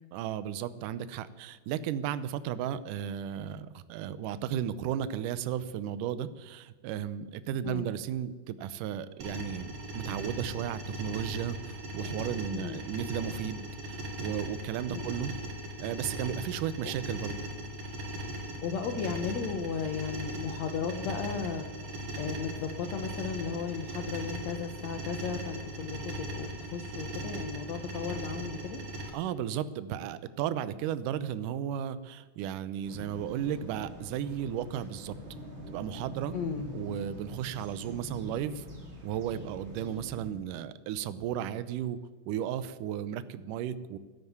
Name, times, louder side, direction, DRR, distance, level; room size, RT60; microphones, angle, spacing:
voice 1, 0.1-15.3 15.8-17.3 29.1-35.2 35.7-36.4 36.7-38.7 39.0-42.0 42.3-44.0, right 10 dB, 75° right, 14 dB, 2.0 m, -34 dB
sound 1, 9.2-29.1, equal, 50° right, 3.3 m, -39 dB
voice 2, 12.5-12.8 14.9-15.1 16.8-16.9 18.6-21.7 22.2-28.8 36.3-36.7, left 6 dB, 70° left, 5 dB, 1.7 m, -35 dB
sound 2, 32.8-40.3, equal, 20° right, 2.3 m, -44 dB
13.0 x 11.5 x 9.5 m, 1.4 s
omnidirectional pair, 4.5 m